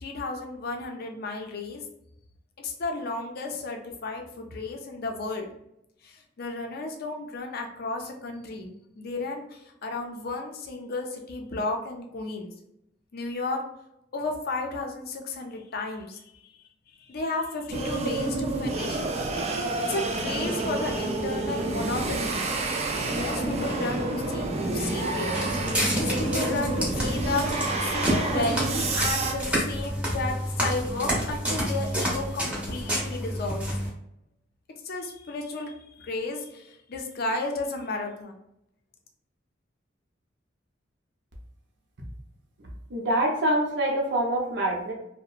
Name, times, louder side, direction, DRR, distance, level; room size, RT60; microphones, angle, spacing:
voice 1, 0.0-1.8 2.6-5.5 6.0-12.5 13.1-13.6 14.1-16.6 16.9-19.6 19.9-22.5 23.0-25.4 25.8-33.7 34.8-38.3, left 3 dB, 55° left, 3 dB, 0.5 m, -33 dB
sound 1, 17.7-29.3, right 2 dB, 35° right, 0.4 m, -29 dB
Walk footsteps, 25.2-33.9, equal, 5° right, 0.8 m, -29 dB
voice 2, 42.9-44.9, right 1 dB, 65° right, -1 dB, 0.7 m, -25 dB
2.8 x 2.1 x 2.4 m, 0.81 s
head